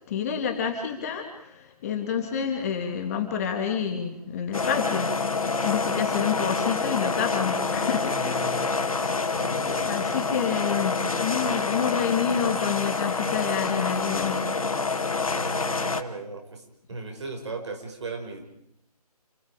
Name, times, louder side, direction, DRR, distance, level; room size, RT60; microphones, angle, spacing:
voice 1, 0.1-1.3 1.8-5.1 5.6-8.7 9.8-14.4, left 7 dB, 25° left, 4 dB, 2.8 m, -28 dB
sound 1, 4.5-16.0, left 4 dB, 60° left, 1.9 m, -27 dB
voice 2, 8.1-8.9 9.3-10.3 15.3-16.6 16.9-18.5, right 3 dB, 45° right, 3 dB, 5.9 m, -37 dB
29.5 x 24.5 x 5.1 m, 0.75 s
figure-of-eight pair, 150°, 20 cm